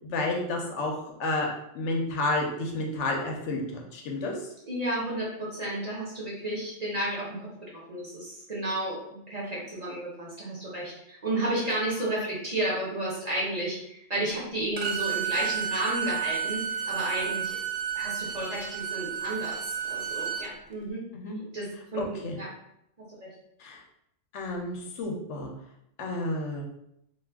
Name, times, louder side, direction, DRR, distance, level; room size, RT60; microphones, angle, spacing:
voice 1, 0.0-4.5 21.1-21.4 22.0-22.4 23.6-23.8 24.3-25.5 26.0-26.6, left 2 dB, 75° left, 0 dB, 0.9 m, -31 dB
voice 2, 4.7-7.5 7.9-9.0 9.3-17.6 17.9-21.0 21.5-22.5 23.2-23.3, right 1 dB, 40° right, -6 dB, 0.7 m, -32 dB
Bowed string instrument, 14.8-20.5, right 8 dB, 70° right, 0.3 m, -31 dB
2.4 x 2.3 x 3.4 m, 0.77 s
omnidirectional pair, 1.3 m